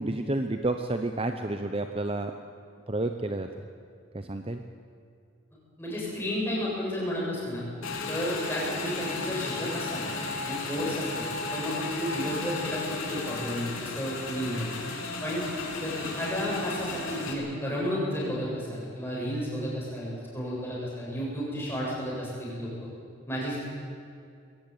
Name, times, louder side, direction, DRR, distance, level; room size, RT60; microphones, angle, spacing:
voice 1, 0.0-2.3 2.9-3.5 4.1-4.6, right 2 dB, 25° right, 6 dB, 0.8 m, -30 dB
voice 2, 5.8-7.6 8.1-10.0 10.4-14.7 15.2-15.4 15.8-22.7 23.3-23.6, equal, 10° left, -5 dB, 7.5 m, -32 dB
Motorcycle / Engine, 7.8-17.3, left 3 dB, 85° left, 3.7 m, -34 dB
21.5 x 17.5 x 9.1 m, 2.4 s
head